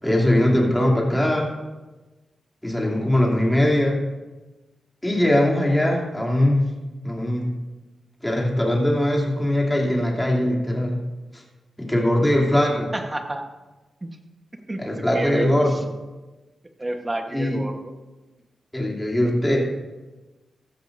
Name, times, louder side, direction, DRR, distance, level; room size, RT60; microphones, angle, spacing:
voice 1, 0.0-1.5 2.6-4.0 5.0-6.6 7.0-7.5 8.2-11.0 11.3-11.4 11.8-12.9 14.8-15.8 17.3-17.6 18.7-19.7, left 1 dB, 10° left, -2 dB, 2.9 m, -21 dB
voice 2, 12.9-13.5 14.0-14.1 14.7-14.8 15.1-15.5 16.8-17.8, right 1 dB, 25° right, 4 dB, 1.2 m, -29 dB
15.5 x 13.0 x 2.7 m, 1.1 s
cardioid pair, 85°, 0 cm